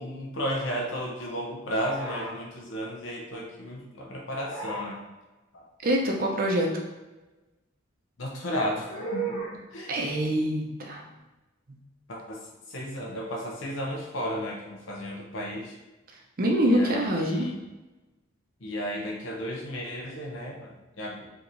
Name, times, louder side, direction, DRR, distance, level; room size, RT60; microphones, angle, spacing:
voice 1, 0.0-5.0 5.5-5.7 8.2-9.9 12.1-12.4 12.7-15.8 16.6-17.6 18.6-21.3, equal, 65° left, -1 dB, 0.8 m, -34 dB
sound 1, 1.8-2.4 4.4-4.9 8.8-9.5, right 3 dB, 90° left, 1.5 m, -34 dB
voice 2, 5.8-6.7 9.9-11.0 11.7-11.8 16.4-17.5, equal, 45° right, 0 dB, 0.6 m, -25 dB
4.6 x 3.0 x 2.6 m, 1.1 s
head